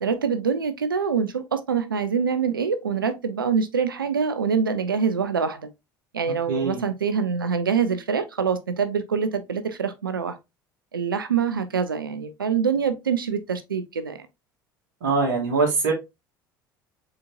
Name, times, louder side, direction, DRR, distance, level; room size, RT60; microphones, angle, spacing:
voice 1, 0.0-5.7 6.1-10.4 10.9-14.3, right 6 dB, 90° right, 0.5 m, -25 dB
voice 2, 6.5-6.8 15.0-15.9, right 4 dB, 75° right, 1.7 m, -22 dB
5.0 x 4.1 x 2.4 m
hypercardioid pair, 65°, 11 cm